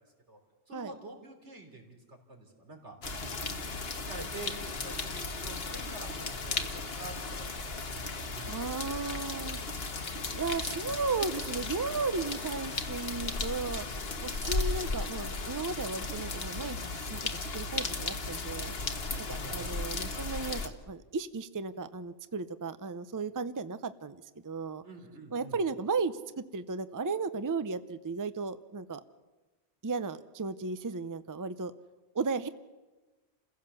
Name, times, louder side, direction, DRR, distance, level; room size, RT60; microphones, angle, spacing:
voice 1, 0.7-3.0 3.4-8.6 9.3-9.4 19.4-19.7 24.8-25.6, right 2 dB, 85° right, 2 dB, 3.7 m, -47 dB
sound 1, 3.0-20.7, left 3 dB, 60° left, 1.6 m, -35 dB
voice 2, 8.5-9.6 10.3-13.8 14.2-18.7 19.3-24.8 25.3-29.0 29.8-31.7 32.1-32.5, right 4 dB, 25° right, 13 dB, 0.5 m, -35 dB
28.5 x 16.0 x 7.0 m, 1.2 s
omnidirectional pair, 1.1 m